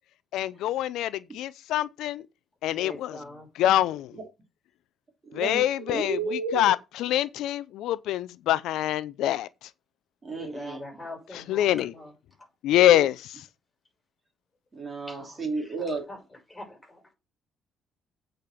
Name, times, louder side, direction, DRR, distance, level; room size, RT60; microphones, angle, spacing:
voice 1, 0.3-2.2 2.6-3.2 3.6-4.1 5.4-6.2 6.5-9.5 11.5-11.9 12.6-13.2, left 13 dB, 80° left, 0.5 m, -25 dB
voice 2, 2.7-3.5 10.3-12.1 15.1-16.2 16.5-17.1, left 1 dB, 10° left, 6.2 m, -43 dB
voice 3, 5.3-6.7 10.2-10.9 12.9-13.1 14.7-16.1, right 3 dB, 25° right, 3.3 m, -33 dB
8.5 x 5.1 x 6.0 m
cardioid pair, 120°, 0 cm